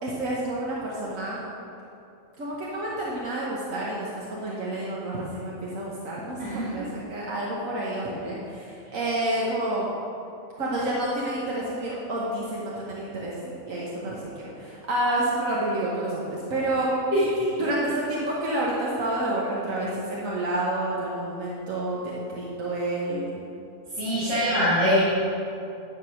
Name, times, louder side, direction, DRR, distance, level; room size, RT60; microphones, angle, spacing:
voice 1, 0.0-1.4 2.4-9.8 10.6-13.4 13.7-16.9 17.6-23.3, right 1 dB, 85° right, -5 dB, 1.6 m, -29 dB
voice 2, 6.4-6.8 17.1-17.5 23.9-25.0, equal, 50° right, -12 dB, 2.4 m, -23 dB
10.5 x 4.9 x 6.3 m, 2.7 s
omnidirectional pair, 1.3 m